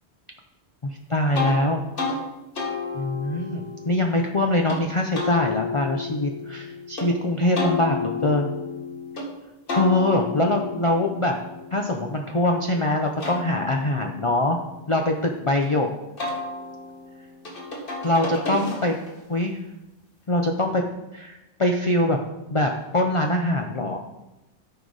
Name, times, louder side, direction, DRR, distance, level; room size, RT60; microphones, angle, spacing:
voice 1, 0.8-1.8 2.9-8.5 9.7-11.3 11.7-14.6 14.9-15.9 18.0-18.9 19.3-19.6 20.3-20.8 21.1-22.2 22.5-24.0, left 1 dB, 35° left, 2 dB, 0.6 m, -23 dB
sound 1, 1.3-1.6 2.0-2.2 2.6-4.8 5.1-7.1 7.6-9.3 9.7-12.6 13.0-15.7 16.2-19.2, left 4 dB, 50° left, 1.7 m, -32 dB
13.0 x 5.0 x 4.0 m, 0.99 s
omnidirectional pair, 1.2 m